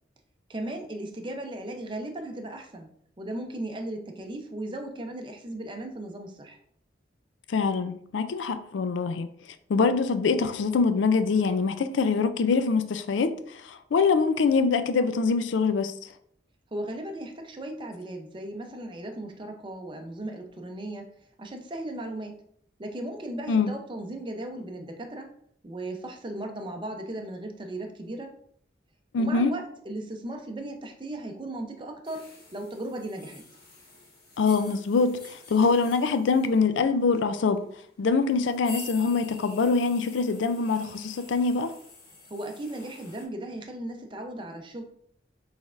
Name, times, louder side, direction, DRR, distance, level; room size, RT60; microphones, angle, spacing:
voice 1, 0.5-2.9 3.2-6.6 16.7-21.1 21.4-22.4 22.8-25.3 25.6-28.3 29.2-33.4 42.3-44.8, right 1 dB, 25° right, 0.6 m, -36 dB
voice 2, 7.5-9.3 9.7-15.9 23.5-23.7 29.1-29.5 34.4-37.6 38.0-41.7, left 4 dB, 85° left, 0.4 m, -24 dB
sound 1, 32.0-43.2, left 2 dB, 55° left, 1.6 m, -48 dB
6.2 x 3.3 x 2.5 m
head